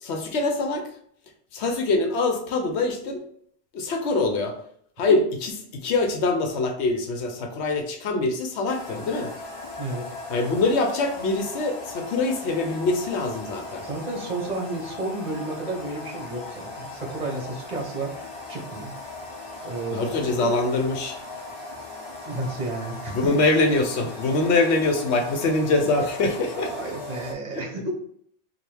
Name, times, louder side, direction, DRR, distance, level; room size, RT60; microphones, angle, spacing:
voice 1, 0.0-0.9 1.5-3.2 3.7-4.5 5.0-9.3 10.3-13.8 19.9-21.2 23.1-26.7 27.5-27.6, left 3 dB, 75° left, 4 dB, 0.9 m, -24 dB
sound 1, 8.7-27.3, left 3 dB, 30° left, 0.8 m, -38 dB
voice 2, 13.8-18.9 19.6-20.1 20.4-20.5 22.3-23.4 26.5-27.9, right 2 dB, 40° right, 0 dB, 1.0 m, -32 dB
3.3 x 2.4 x 4.4 m, 0.65 s
omnidirectional pair, 1.2 m